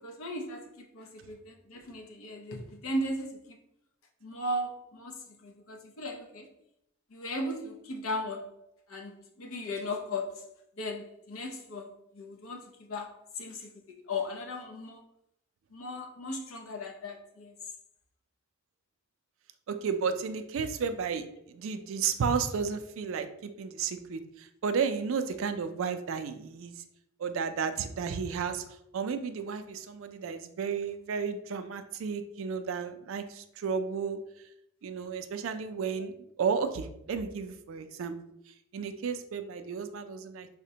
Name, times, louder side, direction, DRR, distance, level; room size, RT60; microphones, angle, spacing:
voice 1, 0.0-3.6 4.2-6.5 7.1-8.6 8.9-15.1 15.7-17.6, left 1 dB, 80° left, 2 dB, 0.6 m, -37 dB
voice 2, 19.7-26.8 27.2-28.7 28.9-34.2 34.8-38.1 38.5-40.5, right 6 dB, 70° right, 9 dB, 0.3 m, -33 dB
4.9 x 2.1 x 2.7 m, 0.77 s
head